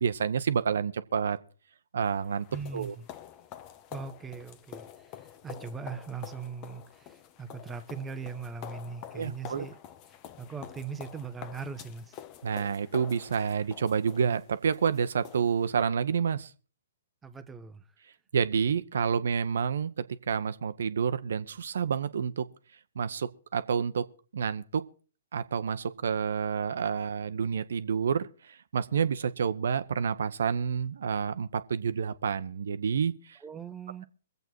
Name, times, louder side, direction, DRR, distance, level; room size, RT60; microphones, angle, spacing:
voice 1, 0.0-1.4 1.9-2.5 2.7-2.9 9.1-9.7 12.4-16.5 18.3-22.5 22.9-24.1 24.3-24.8 25.3-33.4, right 6 dB, 65° right, 1.0 m, -29 dB
sound 1, 2.0-15.7, left 10 dB, 35° left, 1.0 m, -47 dB
voice 2, 2.5-3.1 3.9-9.8 10.4-12.2 17.2-17.8 33.4-34.0, right 5 dB, 15° right, 1.0 m, -40 dB
23.5 x 8.0 x 4.5 m
figure-of-eight pair, 125°, 0 cm